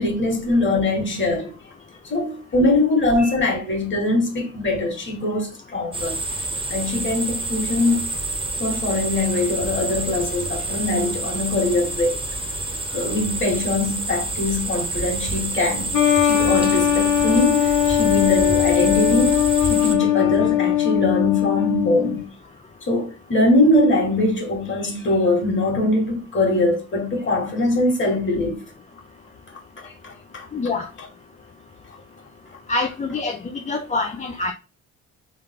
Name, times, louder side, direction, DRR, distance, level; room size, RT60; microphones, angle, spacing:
voice 1, 0.0-1.5 2.1-6.2 6.7-8.1 8.6-12.2 12.9-15.9 16.2-22.2 22.9-28.6 29.8-30.5 31.0-31.1, left 2 dB, 40° left, 1.9 m, -22 dB
sound 1, 5.9-19.9, right 2 dB, 15° right, 1.0 m, -28 dB
sound 2, 15.9-22.2, left 11 dB, 75° left, 0.8 m, -20 dB
voice 2, 30.5-30.9 32.7-34.5, left 3 dB, 25° left, 0.5 m, -26 dB
3.7 x 3.3 x 3.7 m
cardioid pair, 90°, 30 cm